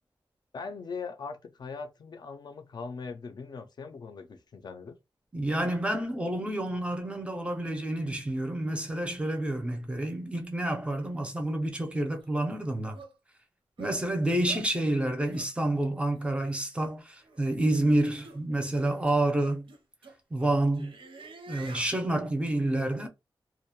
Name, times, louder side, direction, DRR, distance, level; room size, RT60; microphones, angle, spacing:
voice 1, 0.5-4.9, left 4 dB, 55° left, 0.3 m, -40 dB
voice 2, 5.3-13.0 13.8-19.7 20.3-20.9 21.5-23.1, right 1 dB, 15° right, 0.4 m, -29 dB
sound 1, 12.2-12.3 12.9-13.1 13.8-14.0 14.5-14.7 15.3-15.5 16.1-16.3 17.2-17.5 18.2-18.4 19.1-19.2 19.7-21.9, right 4 dB, 85° right, 0.5 m, -47 dB
2.3 x 2.1 x 2.7 m
wide cardioid pair, 145°, 9 cm